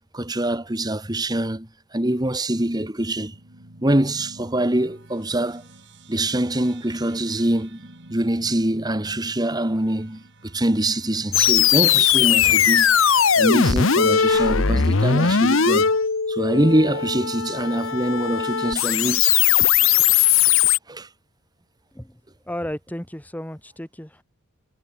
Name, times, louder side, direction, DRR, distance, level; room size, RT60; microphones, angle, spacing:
voice 1, 0.1-3.4 3.8-5.6 6.1-7.8 8.1-13.0 13.4-15.9 16.3-19.4 20.9-21.1, right 1 dB, 20° right, 1.5 m, -24 dB
sound 1, 3.2-14.0, right 2 dB, 50° right, 3.3 m, -49 dB
sound 2, 11.3-20.8, left 8 dB, 60° left, 1.0 m, -19 dB
voice 2, 22.4-24.2, left 1 dB, 5° left, 1.3 m, -33 dB
head